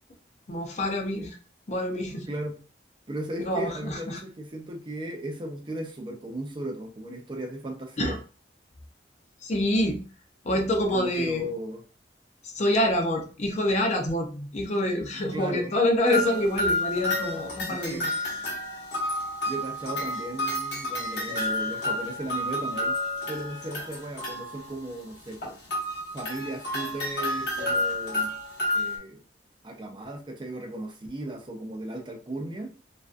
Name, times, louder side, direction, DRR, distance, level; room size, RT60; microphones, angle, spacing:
voice 1, 0.5-1.4 1.7-2.3 3.4-4.2 8.0-8.2 9.4-10.1 10.4-11.5 12.4-18.1, left 1 dB, 40° left, 3 dB, 0.5 m, -26 dB
voice 2, 2.3-2.6 3.1-8.2 10.9-11.8 15.3-15.7 17.7-18.1 19.5-23.0 23.3-25.6 26.1-28.3 28.7-29.2 29.6-32.7, right 1 dB, 25° right, 3 dB, 0.5 m, -36 dB
sound 1, 16.1-24.8 25.3-29.0, left 1 dB, 70° left, 0.8 m, -30 dB
2.4 x 2.2 x 2.4 m, 0.36 s
head